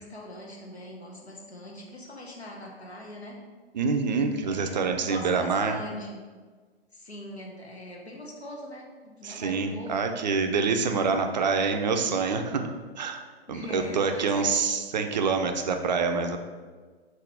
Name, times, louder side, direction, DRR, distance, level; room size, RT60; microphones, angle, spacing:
voice 1, 0.0-3.4 4.4-6.3 6.9-10.0 13.5-14.6, left 1 dB, 85° left, -1 dB, 1.1 m, -41 dB
voice 2, 3.7-5.8 9.2-12.7 13.0-13.2 13.5-16.4, right 4 dB, 45° right, 6 dB, 0.4 m, -26 dB
4.1 x 3.7 x 3.4 m, 1.4 s
figure-of-eight pair, 120°, 32 cm